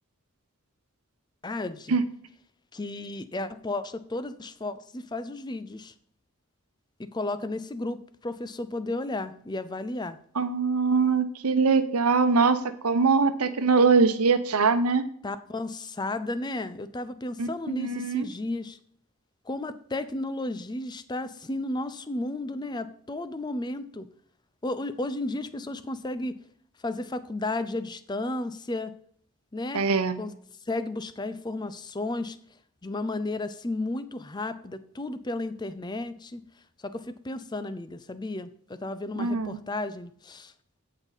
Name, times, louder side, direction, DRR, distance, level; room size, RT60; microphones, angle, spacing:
voice 1, 1.4-2.0 2.7-5.9 7.0-10.2 15.2-18.8 19.5-24.1 24.6-26.4 26.8-28.9 29.5-29.8 30.2-30.3 30.7-32.4 32.8-36.4 36.8-40.5, left 2 dB, 20° left, 13 dB, 0.5 m, -33 dB
voice 2, 10.4-15.0 17.4-18.3 29.7-30.2 39.2-39.6, right 4 dB, 85° right, 11 dB, 0.9 m, -23 dB
15.5 x 5.4 x 4.1 m, 0.64 s
head